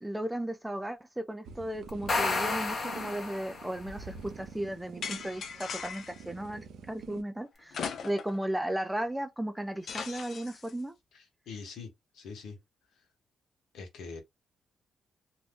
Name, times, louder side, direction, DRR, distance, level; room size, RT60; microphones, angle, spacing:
voice 1, 0.0-7.8 8.0-10.9, right 1 dB, 5° right, 0.5 m, -35 dB
sound 1, 1.4-7.2, right 6 dB, 80° right, 0.5 m, -47 dB
sound 2, 1.9-3.9, left 3 dB, 40° left, 0.8 m, -31 dB
sound 3, 5.0-6.2 7.7-8.4 8.8-8.9 9.9-10.7, left 6 dB, 65° left, 0.5 m, -39 dB
voice 2, 11.1-12.6 13.7-14.2, left 4 dB, 85° left, 1.0 m, -44 dB
2.6 x 2.2 x 3.4 m
cardioid pair, 105°, 0 cm